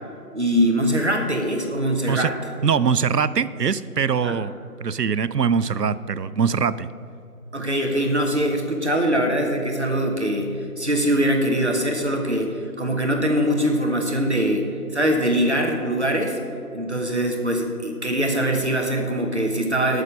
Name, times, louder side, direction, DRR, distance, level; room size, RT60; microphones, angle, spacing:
voice 1, 0.3-2.3 4.2-4.4 7.5-16.4 16.7-20.0, equal, 45° right, 2 dB, 1.3 m, -22 dB
voice 2, 2.6-4.5 4.8-6.9, right 6 dB, 80° right, 15 dB, 0.6 m, -22 dB
12.5 x 6.6 x 6.4 m, 2.6 s
figure-of-eight pair, 170°, 47 cm